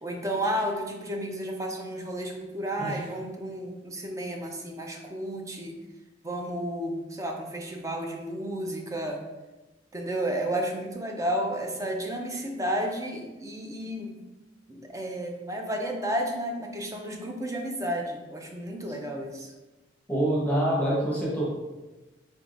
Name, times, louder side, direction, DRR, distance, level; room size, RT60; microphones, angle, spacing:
voice 1, 0.0-5.8 6.2-9.2 9.9-14.2 14.7-19.5, right 1 dB, 20° right, 2 dB, 0.4 m, -32 dB
voice 2, 20.1-21.4, right 1 dB, 10° left, -7 dB, 0.9 m, -25 dB
4.2 x 3.5 x 2.5 m, 1.1 s
head